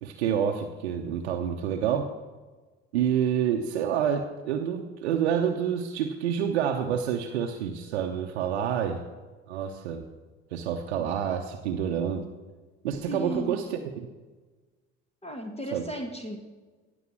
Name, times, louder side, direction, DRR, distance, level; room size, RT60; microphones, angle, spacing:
voice 1, 0.0-2.1 2.9-9.0 9.5-10.0 10.5-12.3 12.8-14.1 15.7-15.8, right 8 dB, 80° right, 3 dB, 0.8 m, -28 dB
voice 2, 13.1-13.7 15.2-16.4, right 1 dB, 20° left, 4 dB, 1.8 m, -35 dB
16.0 x 7.0 x 6.1 m, 1.3 s
figure-of-eight pair, 50°, 32 cm